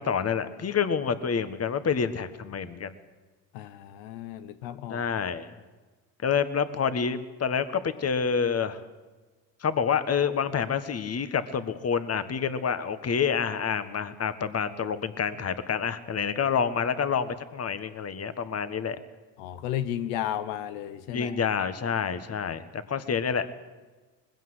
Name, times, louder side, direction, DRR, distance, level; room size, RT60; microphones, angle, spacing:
voice 1, 0.0-2.9 4.9-5.5 6.2-8.8 9.6-19.0 21.1-23.5, left 6 dB, 35° left, 12 dB, 1.5 m, -28 dB
voice 2, 3.5-5.1 19.4-21.4, left 11 dB, 85° left, 12 dB, 1.1 m, -34 dB
20.5 x 16.0 x 8.0 m, 1.3 s
supercardioid pair, 85°, 43 cm